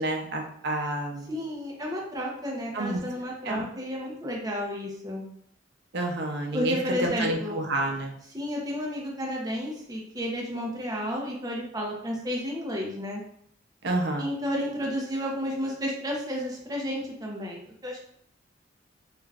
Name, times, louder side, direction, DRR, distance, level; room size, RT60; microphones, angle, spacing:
voice 1, 0.0-1.3 2.7-3.0 3.4-3.6 5.9-8.1 13.8-14.3, right 1 dB, 65° right, 2 dB, 0.5 m, -29 dB
voice 2, 1.3-5.2 6.5-7.6 8.3-13.2 14.2-18.0, equal, 20° right, -2 dB, 0.6 m, -32 dB
2.3 x 2.3 x 3.2 m, 0.66 s
head